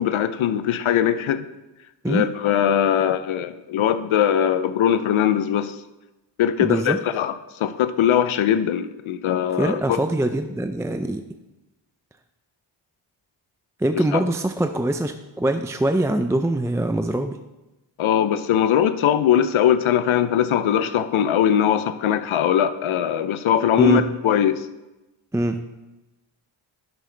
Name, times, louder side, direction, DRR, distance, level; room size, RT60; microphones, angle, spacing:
voice 1, 0.0-1.5 2.1-5.7 6.4-7.3 7.6-10.0 14.1-14.2 18.0-24.7, left 9 dB, 70° left, 12 dB, 0.6 m, -21 dB
voice 2, 6.6-7.0 9.6-11.2 13.8-17.4 23.8-24.0 25.3-25.6, right 1 dB, 5° right, 7 dB, 0.4 m, -23 dB
10.5 x 7.7 x 3.3 m, 1.0 s
cardioid pair, 60°, 50 cm